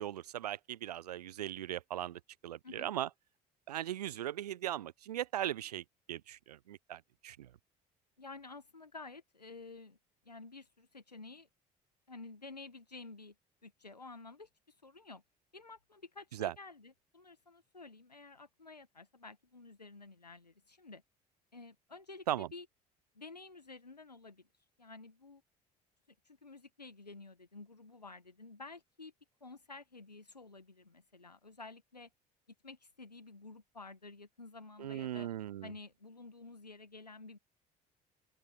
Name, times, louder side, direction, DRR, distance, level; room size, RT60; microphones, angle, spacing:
voice 1, 0.0-3.1 3.7-7.4 16.4-16.5 22.3-22.5 34.8-35.7, right 12 dB, 75° right, 1.0 m, -38 dB
voice 2, 8.2-10.0 10.2-11.5 12.1-13.3 13.6-15.2 15.5-21.0 21.5-22.7 23.1-25.4 26.2-29.1 29.4-32.1 32.6-35.3 35.6-37.4, left 3 dB, 85° left, 1.5 m, -51 dB
open air
figure-of-eight pair, 55°, 20 cm